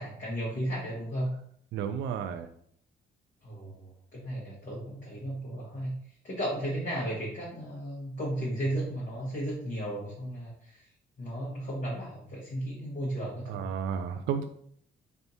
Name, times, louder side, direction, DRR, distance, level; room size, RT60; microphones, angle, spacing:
voice 1, 0.0-1.4 3.4-6.0 6.2-10.9 11.2-13.7, right 1 dB, 40° left, -6 dB, 1.4 m, -34 dB
voice 2, 1.7-2.5 13.5-14.4, right 7 dB, 70° right, 7 dB, 0.4 m, -32 dB
3.5 x 2.6 x 4.1 m, 0.64 s
cardioid pair, 90°, 20 cm